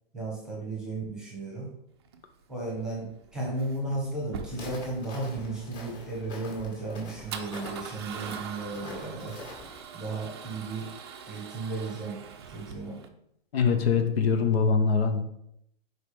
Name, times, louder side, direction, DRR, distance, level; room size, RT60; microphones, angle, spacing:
voice 1, 0.1-1.7 2.5-9.4 9.9-10.9 11.3-12.2 12.5-13.0, right 2 dB, ahead, -2 dB, 1.0 m, -34 dB
Male speech man speaking / Car / Engine starting, 2.0-13.1, right 6 dB, 30° right, 0.4 m, -44 dB
Walk footsteps, 4.5-9.8, left 1 dB, 30° left, 1.8 m, -45 dB
voice 2, 13.5-15.2, left 5 dB, 85° left, 5 dB, 1.1 m, -23 dB
5.1 x 4.7 x 5.0 m, 0.75 s
hypercardioid pair, 170°, 30 cm